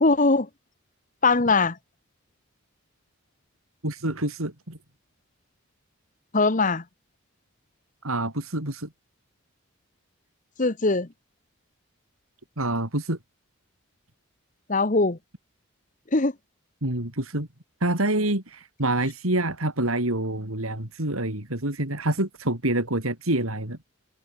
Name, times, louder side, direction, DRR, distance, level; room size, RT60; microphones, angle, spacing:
voice 1, 0.0-0.5 1.2-1.8 6.3-6.8 10.6-11.1 14.7-15.2 16.1-16.3, left 3 dB, 35° left, 1.1 m, -21 dB
voice 2, 3.8-4.8 8.0-8.9 12.6-13.2 16.8-17.5 17.8-23.8, right 1 dB, 85° right, 5.2 m, -27 dB
head